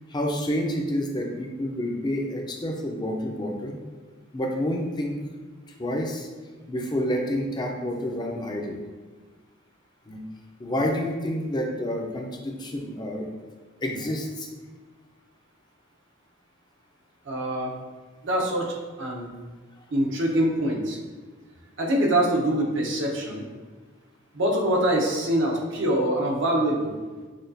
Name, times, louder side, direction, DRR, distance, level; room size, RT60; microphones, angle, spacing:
voice 1, 0.1-3.8 4.3-5.1 5.8-6.3 6.7-8.8 10.1-10.2 10.6-13.3 13.8-14.5, equal, 20° left, 1 dB, 0.5 m, -28 dB
voice 2, 17.3-17.7 18.2-19.3 19.9-21.0 21.8-23.4 24.3-26.9, right 1 dB, 65° right, 0 dB, 0.8 m, -24 dB
6.2 x 2.3 x 2.6 m, 1.4 s
head